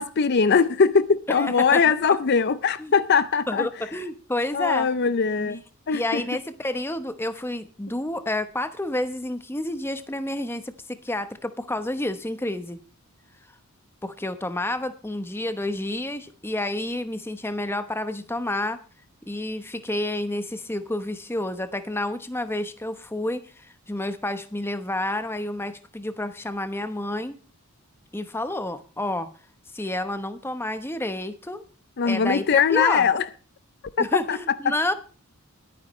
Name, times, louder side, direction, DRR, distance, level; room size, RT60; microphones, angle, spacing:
voice 1, 0.0-3.7 4.5-5.6 5.9-6.2 32.0-33.3 34.0-34.4 34.7-34.8, left 6 dB, 50° left, 0.5 m, -21 dB
voice 2, 1.3-1.8 2.8-2.9 3.5-4.9 5.4-5.6 5.9-12.8 14.0-18.8 19.2-27.4 28.1-29.3 29.7-31.6 32.0-33.1 34.0-34.9, left 1 dB, 10° left, 0.9 m, -29 dB
21.5 x 9.6 x 3.1 m
head